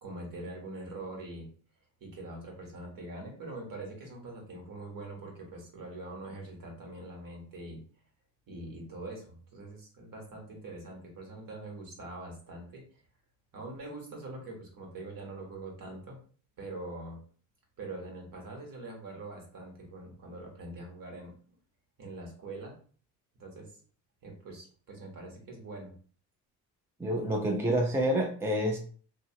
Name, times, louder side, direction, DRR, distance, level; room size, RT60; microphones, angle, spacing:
voice 1, 0.0-1.5 2.0-7.8 8.5-12.8 13.5-16.2 16.6-17.2 17.8-21.3 22.0-22.8 23.4-23.7 24.2-25.9, right 2 dB, 55° right, 1.3 m, -43 dB
voice 2, 27.0-28.8, right 1 dB, 5° right, 0.5 m, -28 dB
2.7 x 2.3 x 2.8 m
supercardioid pair, 70°, 40 cm